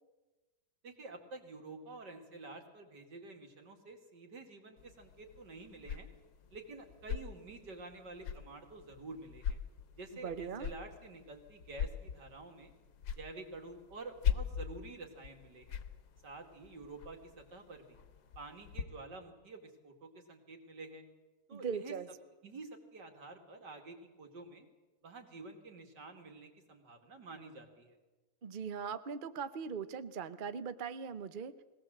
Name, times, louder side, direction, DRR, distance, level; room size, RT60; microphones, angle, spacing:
voice 1, 0.8-6.1 6.5-9.6 9.9-12.7 13.2-15.8 16.2-18.0 18.4-21.0 21.5-21.9 22.4-24.7 25.0-28.0, right 3 dB, 70° right, 4 dB, 3.0 m, -49 dB
sound 1, 4.8-18.8, left 8 dB, 85° left, 1.8 m, -42 dB
voice 2, 10.2-10.7 21.5-22.1 28.4-31.5, right 6 dB, 50° right, 12 dB, 0.6 m, -40 dB
21.0 x 17.5 x 7.7 m, 1.2 s
omnidirectional pair, 2.0 m